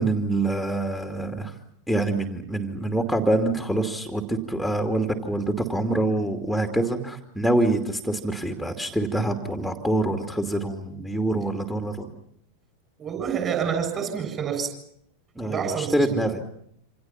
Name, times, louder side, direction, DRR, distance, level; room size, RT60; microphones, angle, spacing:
voice 1, 0.0-1.5 1.9-12.1 15.4-16.4, right 2 dB, ahead, 4 dB, 2.6 m, -25 dB
voice 2, 13.0-14.7 15.4-16.2, right 7 dB, 25° right, 6 dB, 7.3 m, -28 dB
28.0 x 26.5 x 5.9 m, 0.71 s
figure-of-eight pair, 90°, 0 cm